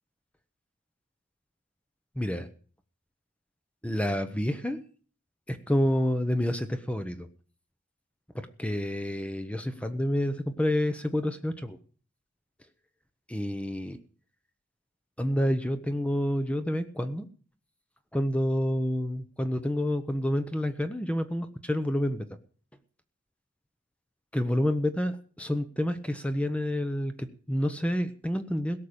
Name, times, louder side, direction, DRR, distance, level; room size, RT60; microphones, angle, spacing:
voice 1, 2.2-2.5 3.8-4.8 5.5-7.3 8.3-11.8 13.3-14.0 15.2-17.3 18.1-22.3 24.3-28.8, equal, 5° left, 9 dB, 0.9 m, -28 dB
17.0 x 6.6 x 8.7 m, 0.43 s
head